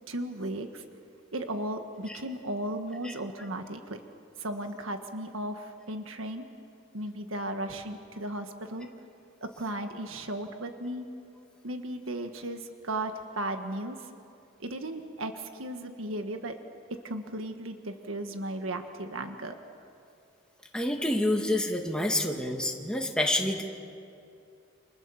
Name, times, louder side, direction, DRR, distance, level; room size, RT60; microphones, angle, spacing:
voice 1, 0.1-0.8 1.3-4.0 4.4-6.4 6.9-8.9 9.4-11.1 11.6-14.1 14.6-16.6 16.9-19.6, right 1 dB, 80° right, 6 dB, 1.6 m, -35 dB
voice 2, 20.7-23.6, left 1 dB, 5° left, 1 dB, 2.2 m, -28 dB
29.5 x 27.0 x 7.2 m, 2.5 s
head